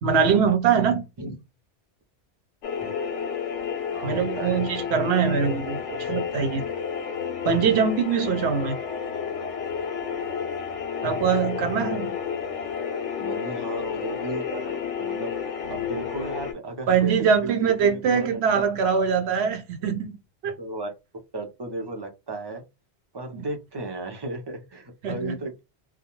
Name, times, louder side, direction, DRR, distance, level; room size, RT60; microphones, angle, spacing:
voice 1, 0.0-1.0 4.0-6.6 7.4-8.8 11.0-12.2 16.9-20.2 20.4-20.5 23.3-23.4 25.0-25.3, right 6 dB, 70° right, 0.9 m, -23 dB
sound 1, 2.6-16.5, left 7 dB, 85° left, 0.9 m, -31 dB
voice 2, 3.9-4.6 13.2-15.3 15.7-17.1 17.4-19.0 19.8-19.9 20.6-20.9 21.3-22.6 23.1-25.6, right 2 dB, 35° right, 0.4 m, -35 dB
2.3 x 2.1 x 2.9 m
omnidirectional pair, 1.2 m